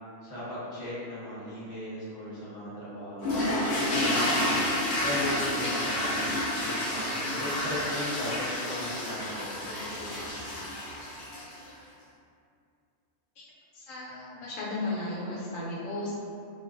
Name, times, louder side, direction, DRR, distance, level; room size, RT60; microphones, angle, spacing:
voice 1, 0.2-6.2 6.6-10.5, left 1 dB, 20° left, -12 dB, 0.8 m, -37 dB
sound 1, 3.2-11.7, left 1 dB, 65° left, 0.8 m, -30 dB
voice 2, 13.7-16.2, left 2 dB, 85° left, -6 dB, 1.0 m, -34 dB
2.3 x 2.2 x 2.5 m, 2.4 s
omnidirectional pair, 1.3 m